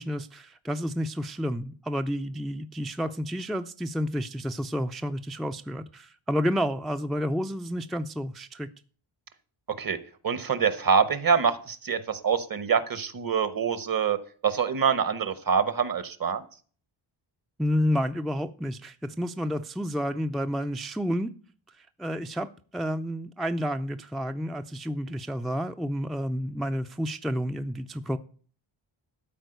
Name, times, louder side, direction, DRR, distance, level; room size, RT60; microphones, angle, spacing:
voice 1, 0.0-8.7 17.6-21.3 21.7-28.2, equal, ahead, 8 dB, 0.4 m, -30 dB
voice 2, 10.2-14.2 14.4-16.4, right 6 dB, 45° right, 14 dB, 1.1 m, -25 dB
12.5 x 4.6 x 7.9 m, 0.43 s
wide cardioid pair, 115°, 49 cm